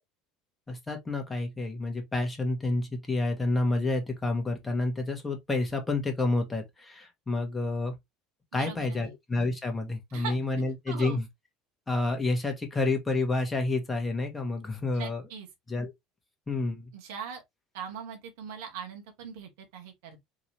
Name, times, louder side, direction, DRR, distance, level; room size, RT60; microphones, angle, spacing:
voice 1, 0.7-7.9 8.5-11.2 11.9-15.2 15.7-15.9 16.5-16.9, left 2 dB, 20° left, 1.5 m, -29 dB
voice 2, 8.5-9.1 10.1-11.2 14.9-15.5 16.9-17.4 17.7-20.2, right 7 dB, 70° right, 1.3 m, -41 dB
3.8 x 2.8 x 3.0 m
hypercardioid pair, 70°, 0 cm